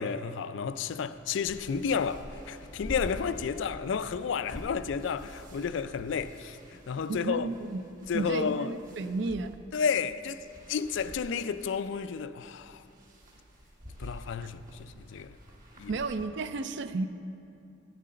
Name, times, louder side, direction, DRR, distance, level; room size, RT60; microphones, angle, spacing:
voice 1, 0.0-7.5 8.1-8.7 9.0-9.1 9.7-12.8 14.0-15.3 15.8-15.9, left 6 dB, 65° left, 0.3 m, -32 dB
sound 1, 0.7-16.3, equal, 40° right, 1.5 m, -48 dB
voice 2, 7.1-7.8 8.1-9.6 15.9-17.1, right 3 dB, 60° right, 0.4 m, -32 dB
8.4 x 7.6 x 7.7 m
head